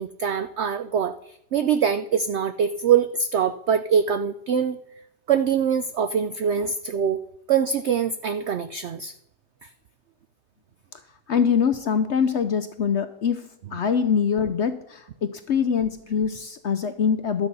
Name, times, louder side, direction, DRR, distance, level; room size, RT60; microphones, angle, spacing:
voice 1, 0.0-4.8 5.3-7.2 7.5-9.1 9.6-9.7, right 7 dB, 75° right, 11 dB, 0.6 m, -23 dB
voice 2, 11.3-17.5, left 7 dB, 60° left, 10 dB, 0.7 m, -24 dB
12.0 x 8.0 x 5.4 m, 0.81 s
omnidirectional pair, 1.8 m